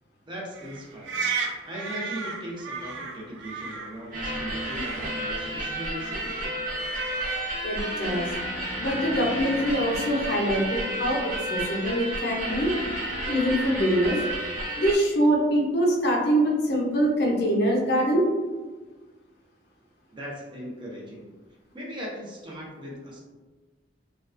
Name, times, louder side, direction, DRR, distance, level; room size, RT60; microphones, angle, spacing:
voice 1, 0.2-1.4 1.6-6.4 20.1-21.3 21.7-23.2, equal, 25° right, -3 dB, 0.5 m, -38 dB
sound 1, 0.5-14.6, right 4 dB, 80° right, 0.3 m, -38 dB
sound 2, 4.1-14.9, right 1 dB, 45° right, 0.9 m, -31 dB
voice 2, 7.6-8.3 8.8-12.7 13.2-14.2 14.8-18.3, equal, 60° left, -1 dB, 0.6 m, -24 dB
2.3 x 2.2 x 2.4 m, 1.3 s
head